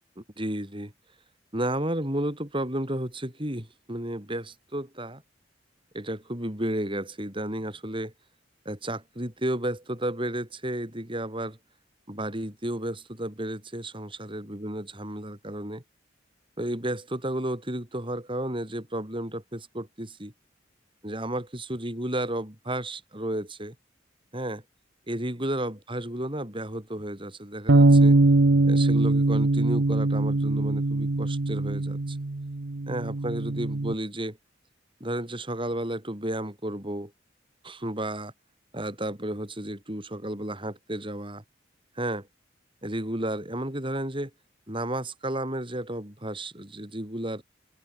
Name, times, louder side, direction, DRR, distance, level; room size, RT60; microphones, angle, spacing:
voice 1, 0.2-0.9 1.5-5.2 5.9-8.1 8.7-11.6 12.1-15.8 16.6-20.3 21.0-23.8 24.3-24.6 25.1-28.2 28.6-32.2 32.9-34.4 35.0-37.1 37.6-38.3 38.7-41.4 42.0-42.3 42.8-44.3 44.7-47.4, right 1 dB, 25° right, 7.2 m, -32 dB
sound 1, 27.7-33.9, right 2 dB, 80° right, 1.0 m, -22 dB
head